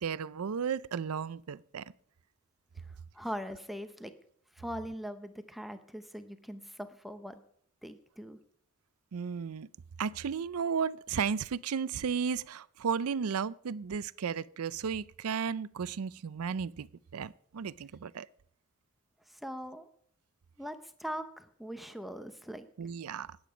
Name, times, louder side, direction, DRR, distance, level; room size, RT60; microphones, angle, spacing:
voice 1, 0.0-1.9 9.1-9.7 10.0-16.9 17.1-18.3 22.8-23.4, right 6 dB, 90° right, 0.5 m, -34 dB
voice 2, 3.1-4.1 4.6-7.4 7.8-8.4 19.3-19.9 20.6-22.7, equal, ahead, 0.7 m, -41 dB
19.5 x 8.8 x 5.1 m
head